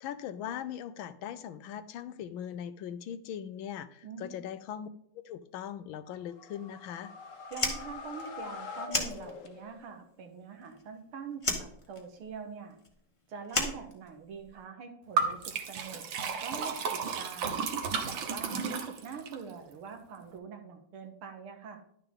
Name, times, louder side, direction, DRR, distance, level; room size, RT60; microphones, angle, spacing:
voice 1, 0.0-4.9 5.1-7.1, left 9 dB, 75° left, 14 dB, 1.4 m, -40 dB
voice 2, 4.0-4.4 7.5-12.8 13.3-17.6 18.0-21.8, right 6 dB, 85° right, 5 dB, 2.2 m, -44 dB
sound 1, 6.2-10.0, left 5 dB, 45° left, 1.2 m, -44 dB
Fire, 7.5-9.8 10.0-11.0 11.4-14.6, left 2 dB, 20° left, 1.2 m, -34 dB
Liquid, 15.2-19.4, right 5 dB, 65° right, 1.8 m, -33 dB
11.0 x 6.8 x 3.6 m, 0.71 s
omnidirectional pair, 2.3 m